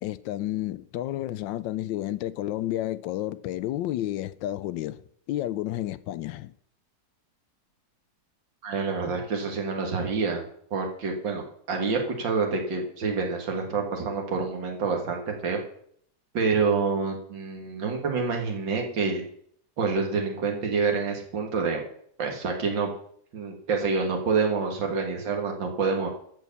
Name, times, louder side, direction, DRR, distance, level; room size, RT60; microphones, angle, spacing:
voice 1, 0.0-5.0 5.3-6.5, left 14 dB, 85° left, 1.3 m, -31 dB
voice 2, 8.6-10.4 10.7-15.6 16.3-19.2 19.8-21.8 22.2-22.9 23.3-26.1, right 4 dB, 80° right, 2.5 m, -27 dB
14.0 x 4.7 x 6.9 m
omnidirectional pair, 2.0 m